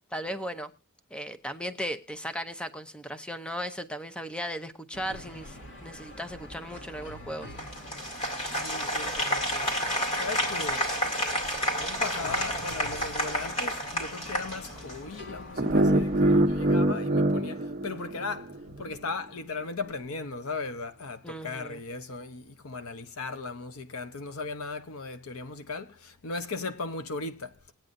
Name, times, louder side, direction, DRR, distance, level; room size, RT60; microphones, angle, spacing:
voice 1, 0.1-0.7 1.1-7.5 21.2-21.8, equal, 5° left, 0.7 m, -36 dB
sound 1, 4.9-16.7, left 1 dB, 60° left, 2.6 m, -45 dB
Applause, 7.6-15.1, equal, 30° left, 2.3 m, -30 dB
voice 2, 8.5-9.9 10.2-10.9 11.5-27.5, left 3 dB, 80° left, 0.9 m, -37 dB
sound 2, 15.6-18.6, right 1 dB, 40° right, 0.9 m, -24 dB
20.0 x 8.8 x 2.6 m
head